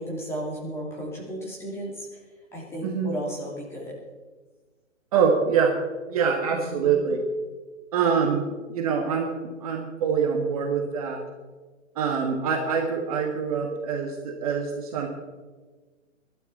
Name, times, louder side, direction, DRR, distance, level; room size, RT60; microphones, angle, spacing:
voice 1, 0.0-2.1 2.5-3.9 6.5-6.8, right 1 dB, 5° left, -3 dB, 2.6 m, -34 dB
voice 2, 2.8-3.1 5.1-5.7 6.1-7.2 7.9-8.4 8.7-11.2 11.9-15.1, right 6 dB, 30° right, 1 dB, 1.5 m, -25 dB
22.5 x 12.0 x 4.2 m, 1.3 s
hypercardioid pair, 160°, 39 cm